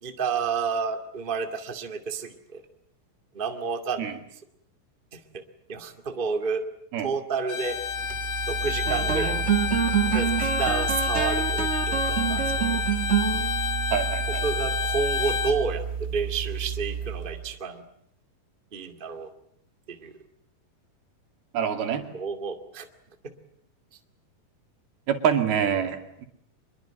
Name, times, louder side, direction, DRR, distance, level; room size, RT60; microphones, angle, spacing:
voice 1, 0.0-2.6 3.3-4.1 5.1-5.4 5.7-6.6 7.0-7.8 8.5-9.4 10.1-12.4 14.3-17.8 18.7-19.3 19.9-20.1 22.1-22.9, right 5 dB, 20° right, 6 dB, 1.7 m, -30 dB
Bowed string instrument, 7.5-15.6, left 6 dB, 70° left, 3.7 m, -29 dB
sound 1, 7.9-17.5, right 8 dB, 40° right, 0.9 m, -28 dB
voice 2, 13.9-14.4 21.5-22.1 25.1-26.3, right 8 dB, 85° right, 6 dB, 4.4 m, -26 dB
25.5 x 22.5 x 9.0 m, 0.70 s
omnidirectional pair, 4.3 m